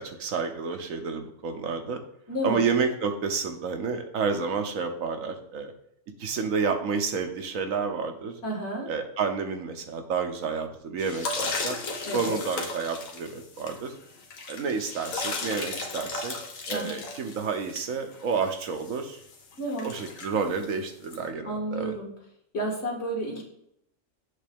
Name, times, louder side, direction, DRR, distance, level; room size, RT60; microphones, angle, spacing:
voice 1, 0.0-2.0 2.4-5.7 6.2-8.3 8.9-11.8 12.1-13.9 14.5-16.3 16.7-19.2 19.8-21.9, right 5 dB, 85° right, 6 dB, 1.3 m, -30 dB
voice 2, 2.3-2.7 8.4-8.9 12.0-12.4 16.7-17.0 19.6-20.0 21.4-22.1 22.5-23.4, right 1 dB, 60° left, -2 dB, 2.0 m, -31 dB
sound 1, 11.0-21.2, left 3 dB, 85° left, 1.4 m, -35 dB
8.0 x 3.3 x 5.1 m, 0.72 s
omnidirectional pair, 1.4 m